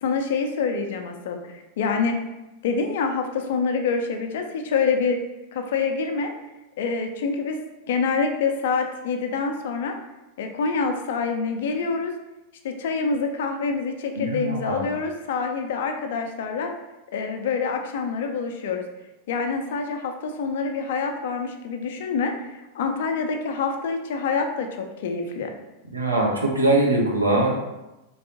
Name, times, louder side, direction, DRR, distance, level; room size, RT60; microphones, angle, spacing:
voice 1, 0.0-2.2 2.6-5.2 5.5-6.3 6.8-7.6 7.9-9.9 10.4-12.1 12.6-16.7 17.1-18.8 19.3-22.3 22.7-25.5, left 5 dB, 55° left, 4 dB, 0.5 m, -26 dB
voice 2, 14.2-14.9 25.9-27.5, right 2 dB, 80° right, -2 dB, 0.9 m, -22 dB
3.8 x 3.4 x 2.9 m, 0.99 s
figure-of-eight pair, 90°, 0 cm